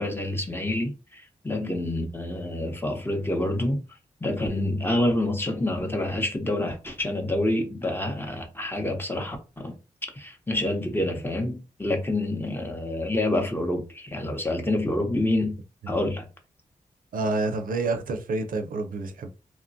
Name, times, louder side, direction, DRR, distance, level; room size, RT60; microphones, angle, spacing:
voice 1, 0.0-3.8 4.2-9.8 10.2-15.6 15.9-16.3, left 1 dB, 15° left, 0.7 m, -27 dB
voice 2, 17.1-19.3, right 3 dB, 75° right, 0.5 m, -28 dB
3.0 x 2.2 x 2.6 m
cardioid pair, 80°, 15 cm